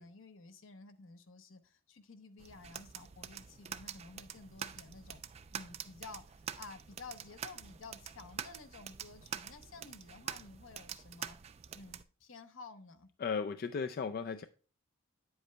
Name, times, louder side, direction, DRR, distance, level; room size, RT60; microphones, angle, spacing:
voice 1, 0.0-5.2 5.5-11.4 11.7-13.1, left 4 dB, 70° left, 0.8 m, -52 dB
sound 1, 2.4-12.0, right 8 dB, 30° right, 0.3 m, -46 dB
voice 2, 13.2-14.4, left 5 dB, 45° left, 0.3 m, -35 dB
9.4 x 7.9 x 2.2 m
head